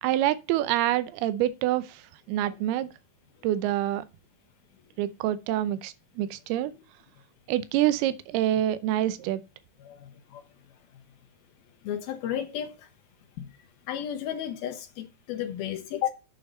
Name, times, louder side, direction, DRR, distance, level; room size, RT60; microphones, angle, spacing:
voice 1, 0.0-2.0 2.3-2.9 3.4-4.0 5.0-6.7 7.5-9.4, right 13 dB, 90° right, 2.7 m, -26 dB
voice 2, 9.8-10.4 11.8-12.8 13.4-13.5 13.9-16.1, left 10 dB, 80° left, 2.8 m, -33 dB
9.2 x 7.1 x 5.4 m
omnidirectional pair, 4.4 m